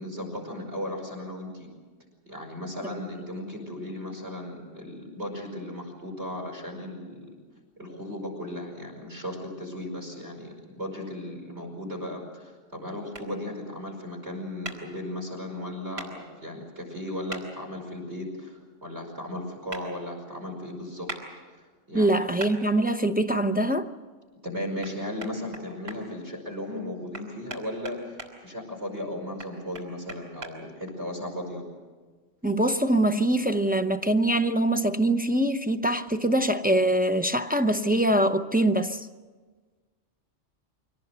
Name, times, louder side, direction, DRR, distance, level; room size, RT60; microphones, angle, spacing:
voice 1, 0.0-1.7 2.3-7.3 7.8-21.1 21.9-22.1 24.4-31.6, left 1 dB, 60° right, 5.6 m, -36 dB
sound 1, 13.1-13.3 14.6-14.8 16.0-16.1 17.3-17.4 19.7-19.8 21.1-21.2 22.4-22.5 24.8-24.9 25.2-26.0 27.1-28.3 29.4-30.5, right 1 dB, 80° right, 3.5 m, -38 dB
voice 2, 21.9-23.9 32.4-39.1, right 1 dB, 10° right, 0.4 m, -23 dB
24.5 x 18.0 x 8.0 m
omnidirectional pair, 1.3 m